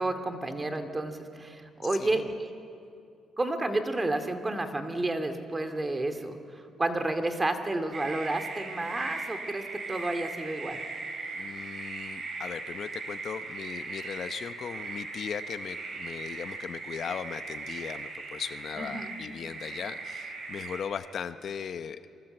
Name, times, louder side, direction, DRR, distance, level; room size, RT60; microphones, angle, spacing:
voice 1, 0.0-2.5 3.4-10.8 18.8-19.1, right 2 dB, 20° right, 8 dB, 2.3 m, -31 dB
sound 1, 7.9-20.8, right 3 dB, 50° right, 4.9 m, -39 dB
voice 2, 11.3-22.0, left 7 dB, 55° left, 10 dB, 0.9 m, -38 dB
29.5 x 24.0 x 8.0 m, 2.4 s
cardioid pair, 100°, 0 cm